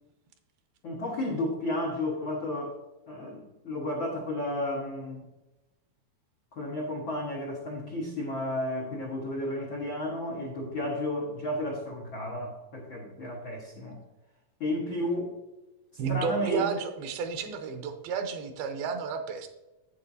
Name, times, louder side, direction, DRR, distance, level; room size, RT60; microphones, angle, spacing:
voice 1, 0.8-2.8 3.1-5.2 6.5-14.0 14.6-15.3 15.9-16.7, left 1 dB, 90° left, -3 dB, 1.0 m, -32 dB
voice 2, 16.0-19.5, right 6 dB, 80° right, 6 dB, 2.6 m, -31 dB
9.9 x 8.4 x 2.7 m, 1.0 s
omnidirectional pair, 4.4 m